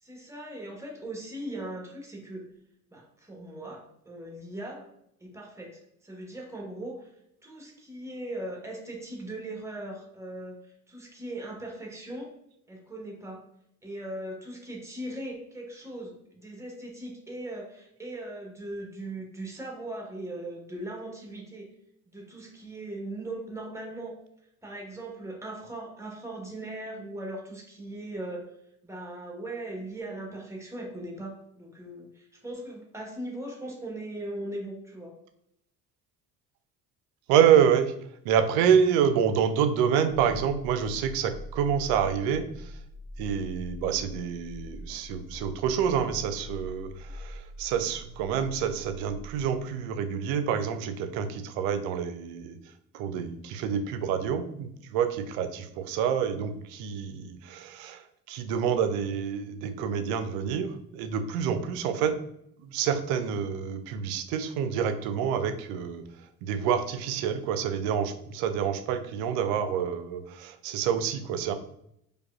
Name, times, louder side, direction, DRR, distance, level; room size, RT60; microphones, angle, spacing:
voice 1, 0.0-2.4 2.9-4.8 5.2-7.1 7.4-12.3 12.7-13.4 13.8-21.7 22.1-24.1 24.6-28.5 28.8-35.1, right 1 dB, 5° right, 0 dB, 1.0 m, -39 dB
voice 2, 37.3-37.9 38.2-42.7 43.2-52.6 52.9-62.2 62.6-66.0 66.4-71.5, right 8 dB, 50° right, 9 dB, 0.5 m, -27 dB
sound 1, 40.1-49.5, left 2 dB, 85° left, 0.9 m, -43 dB
4.6 x 2.3 x 2.3 m, 0.75 s
figure-of-eight pair, 60°, 46 cm